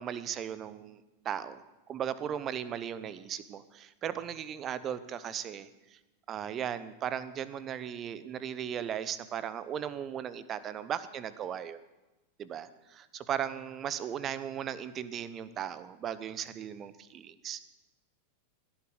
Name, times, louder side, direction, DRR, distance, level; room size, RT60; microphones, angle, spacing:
voice 1, 0.0-6.0 6.3-11.8 12.4-17.7, right 9 dB, 30° right, 15 dB, 0.9 m, -37 dB
17.0 x 11.0 x 6.8 m, 1.1 s
figure-of-eight pair, 90°, 0 cm